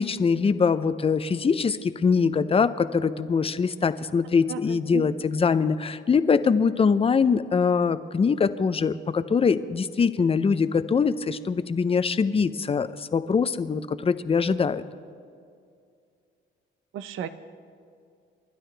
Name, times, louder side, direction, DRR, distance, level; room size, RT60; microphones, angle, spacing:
voice 1, 0.0-14.8, left 5 dB, 30° left, 13 dB, 0.6 m, -23 dB
voice 2, 4.5-5.1 16.9-17.3, right 10 dB, 85° right, 11 dB, 0.8 m, -34 dB
30.0 x 12.0 x 3.4 m, 2.3 s
cardioid pair, 90°, 20 cm